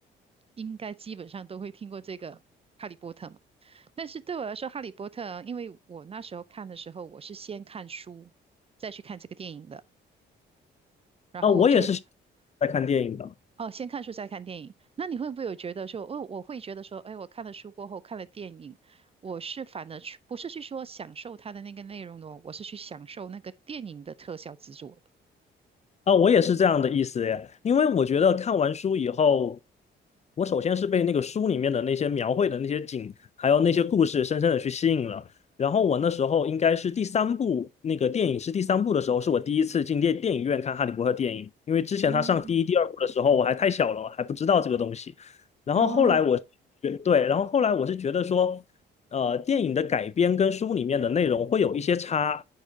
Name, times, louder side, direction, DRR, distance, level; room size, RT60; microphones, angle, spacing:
voice 1, 0.6-2.4 2.8-8.3 8.8-9.8 11.3-11.9 13.6-25.0 42.1-42.6 45.7-46.2, right 6 dB, 30° right, 0.4 m, -38 dB
voice 2, 11.4-12.0 12.6-13.3 26.1-29.6 30.4-33.1 33.4-35.2 35.6-45.3 45.7-46.4 46.8-48.6 49.1-52.4, left 7 dB, 35° left, 0.4 m, -24 dB
9.0 x 4.7 x 2.7 m
cardioid pair, 90°, 20 cm